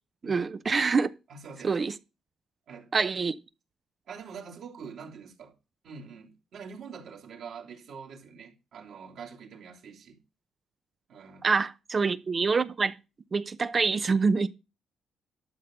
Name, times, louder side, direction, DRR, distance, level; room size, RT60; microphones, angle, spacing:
voice 1, 0.2-1.1 1.6-1.9 2.9-3.3 11.4-13.0 13.3-14.5, right 4 dB, 35° right, 0.7 m, -26 dB
voice 2, 1.3-1.7 2.7-2.9 4.1-5.5 5.8-10.2 11.1-11.5, right 6 dB, 70° right, 3.3 m, -45 dB
12.0 x 6.3 x 5.4 m
cardioid pair, 90°, 0 cm